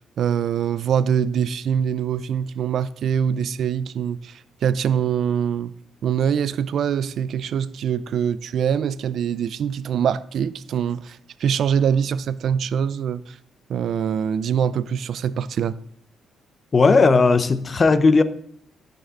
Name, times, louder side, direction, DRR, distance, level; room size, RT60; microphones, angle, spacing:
voice 1, 0.2-5.7 6.0-13.4 13.7-15.8, right 8 dB, 65° right, 0.4 m, -24 dB
voice 2, 16.7-18.2, left 4 dB, 35° left, 0.8 m, -16 dB
15.5 x 5.4 x 3.8 m
cardioid pair, 90°, 0 cm